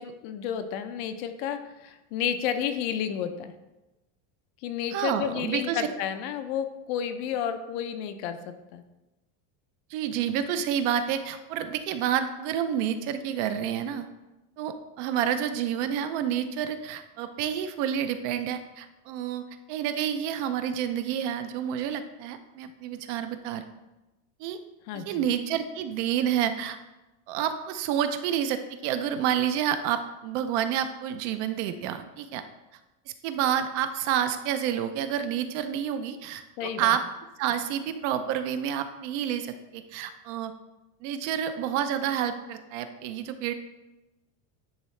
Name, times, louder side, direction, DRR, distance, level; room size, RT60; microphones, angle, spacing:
voice 1, 0.0-3.5 4.6-8.8 24.9-25.3 36.6-37.0, left 8 dB, 50° left, 9 dB, 0.5 m, -31 dB
voice 2, 4.9-5.9 9.9-14.1 14.6-23.6 24.4-24.6 24.9-26.8 27.3-32.4 33.1-37.1 37.4-40.5 41.0-43.5, right 9 dB, 55° right, 9 dB, 0.5 m, -29 dB
10.0 x 3.7 x 3.1 m, 1.0 s
supercardioid pair, 165°, 45 cm